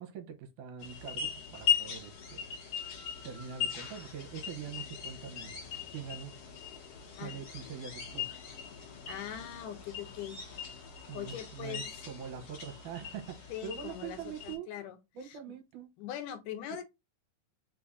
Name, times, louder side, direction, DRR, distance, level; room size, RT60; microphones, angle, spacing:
voice 1, 0.0-2.5 3.2-5.5 5.9-6.3 7.2-8.4 11.1-14.7 15.2-15.9, right 8 dB, 75° right, 2.2 m, -43 dB
sound 1, 0.8-14.6, left 8 dB, 55° left, 2.0 m, -39 dB
voice 2, 9.1-10.4 10.8-10.9 11.1-12.0 13.5-15.4 16.0-16.8, left 10 dB, 80° left, 2.2 m, -42 dB
5.1 x 2.6 x 3.4 m
omnidirectional pair, 3.8 m